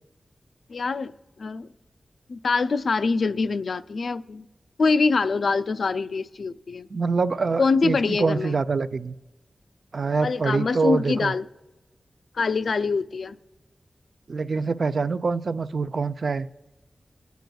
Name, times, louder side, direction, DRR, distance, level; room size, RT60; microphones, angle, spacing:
voice 1, 0.7-1.1 1.4-1.7 2.3-4.5 4.8-6.9 7.6-8.6 10.2-11.4 12.3-13.4, left 4 dB, 70° left, 13 dB, 0.3 m, -24 dB
voice 2, 6.9-9.2 9.9-11.3 14.3-16.5, right 4 dB, 60° right, 12 dB, 0.4 m, -25 dB
21.5 x 9.1 x 2.3 m, 1.1 s
wide cardioid pair, 120°, 0 cm